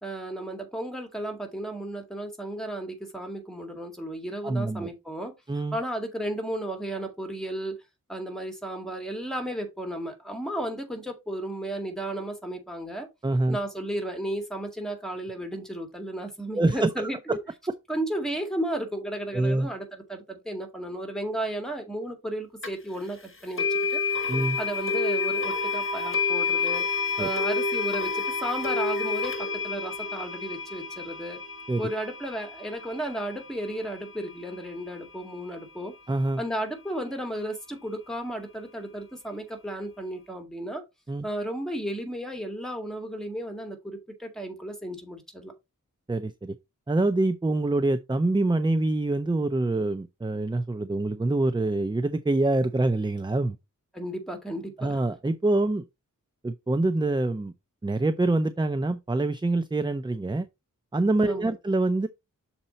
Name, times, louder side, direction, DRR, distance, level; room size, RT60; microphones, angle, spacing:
voice 1, 0.0-5.3 5.7-7.8 8.1-13.1 13.5-17.4 17.9-24.0 24.6-26.8 27.2-31.4 31.8-35.9 36.4-40.8 41.2-45.5 53.9-55.0 61.3-61.5, right 1 dB, ahead, 1.9 m, -34 dB
voice 2, 4.4-4.9 5.5-5.8 13.2-13.6 16.5-17.4 19.3-19.7 24.3-24.6 27.2-27.3 31.7-31.9 36.1-36.4 41.1-41.3 46.1-46.6 46.9-53.6 54.8-55.8 56.4-57.5 57.8-60.5 60.9-62.1, right 2 dB, 15° right, 0.5 m, -25 dB
sound 1, 22.6-22.7 23.6-34.6, left 4 dB, 40° left, 1.2 m, -29 dB
6.7 x 4.3 x 3.9 m
wide cardioid pair, 100°, 33 cm